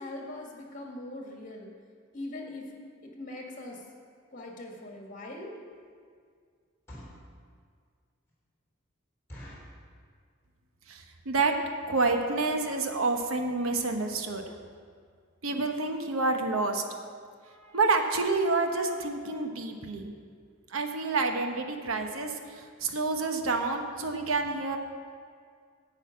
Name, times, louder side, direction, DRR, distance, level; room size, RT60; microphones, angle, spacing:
voice 1, 0.0-1.7 2.1-2.7 3.0-3.8 4.3-5.5, left 1 dB, 40° left, 0 dB, 1.8 m, -41 dB
sound 1, 5.7-5.9 6.6-7.3 7.8-7.9 8.3-8.4 8.7-8.8 9.3-9.8 10.4-10.7 10.9-11.0 11.3-11.5 12.1-12.2 12.4-12.6 12.9-13.0 13.2-13.3, equal, 15° left, 3.3 m, -47 dB
voice 2, 10.9-11.5 11.9-14.4 15.4-16.8 17.6-20.1 20.7-24.8, right 3 dB, 90° right, 5 dB, 1.0 m, -28 dB
10.0 x 5.6 x 8.3 m, 2.1 s
head